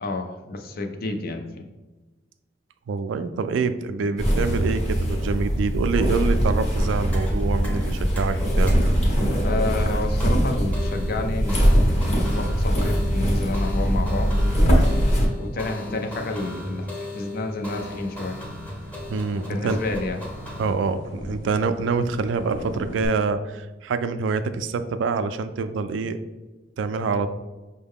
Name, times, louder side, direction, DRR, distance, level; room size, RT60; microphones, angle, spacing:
voice 1, 0.0-1.7 4.0-4.2 9.4-11.6 12.0-14.3 15.4-18.4 19.4-20.2, left 2 dB, 55° left, 4 dB, 0.5 m, -30 dB
voice 2, 2.9-8.8 19.1-19.8 20.6-26.2 26.8-27.3, right 4 dB, 75° right, 10 dB, 0.3 m, -26 dB
sound 1, 4.2-15.3, equal, 40° left, 0.9 m, -22 dB
sound 2, 6.7-20.7, left 1 dB, 10° left, 0.7 m, -36 dB
sound 3, 17.6-23.1, equal, 75° left, 0.9 m, -40 dB
5.4 x 2.2 x 3.5 m, 1.2 s
head